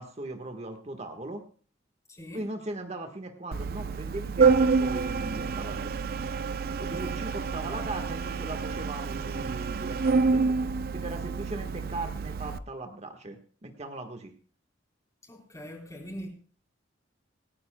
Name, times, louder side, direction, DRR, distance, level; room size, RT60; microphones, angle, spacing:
voice 1, 0.0-1.4 2.3-5.9 6.8-10.6 10.9-14.3, right 2 dB, 35° right, 1.4 m, -39 dB
voice 2, 2.1-2.5 7.0-7.9 15.2-16.3, equal, 20° left, 4.0 m, -43 dB
Organ, 3.5-12.6, right 4 dB, 55° right, 0.6 m, -28 dB
27.0 x 9.7 x 2.2 m
head